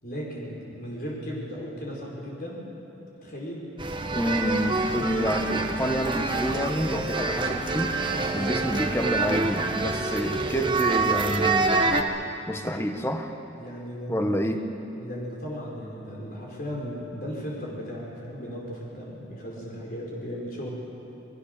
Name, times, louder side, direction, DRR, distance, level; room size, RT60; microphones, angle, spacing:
voice 1, 0.0-2.6 3.2-3.7 8.2-8.6 13.5-14.4 15.0-20.7, equal, 50° left, -3 dB, 4.7 m, -36 dB
sound 1, 3.8-12.0, right 3 dB, 25° right, 1.3 m, -26 dB
voice 2, 4.1-7.9 8.3-11.9 12.5-13.3 14.1-14.7, equal, 15° left, 5 dB, 1.4 m, -28 dB
29.0 x 21.5 x 6.7 m, 2.9 s
head